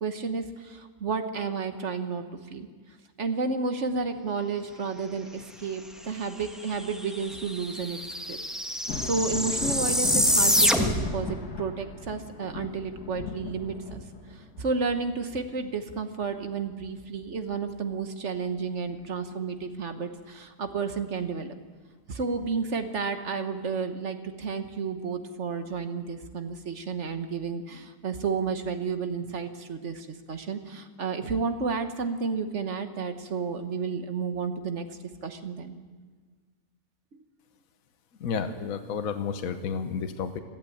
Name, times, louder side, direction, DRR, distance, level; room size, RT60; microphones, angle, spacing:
voice 1, 0.0-2.7 3.2-8.0 8.3-8.4 9.0-14.0 14.3-21.5 22.1-34.9 35.2-35.8 37.1-37.2, right 5 dB, 50° right, 8 dB, 1.5 m, -31 dB
sound 1, 6.7-6.8 7.0-11.2, equal, ahead, 1.3 m, -26 dB
Thunder, 8.7-18.0 18.4-19.6 21.2-21.3 22.1-22.2, left 4 dB, 80° left, 2.5 m, -38 dB
voice 2, 38.2-40.4, left 6 dB, 65° left, 7 dB, 1.4 m, -31 dB
21.0 x 14.5 x 8.6 m, 1.5 s
omnidirectional pair, 1.6 m